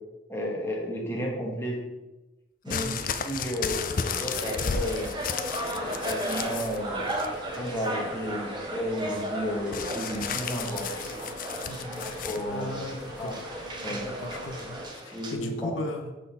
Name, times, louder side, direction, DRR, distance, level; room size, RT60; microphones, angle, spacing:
voice 1, 0.3-1.8 2.6-5.1 5.7-7.0 7.5-10.9 12.0-12.8 13.1-13.4 13.8-14.0 14.6-14.8 15.1-15.7, equal, 10° left, -2 dB, 1.1 m, -33 dB
voice 2, 2.7-3.0 11.7-12.0 12.4-13.4 13.9-16.1, left 1 dB, 80° left, 5 dB, 0.8 m, -37 dB
sound 1, 2.7-6.8 7.1-7.7 9.7-12.4 13.3-13.4, left 6 dB, 45° left, 0.4 m, -33 dB
sound 2, 2.7-15.3, right 1 dB, 20° right, 0.9 m, -36 dB
sound 3, 3.9-14.9, equal, 5° right, 2.5 m, -41 dB
6.3 x 3.8 x 5.6 m, 1.0 s
head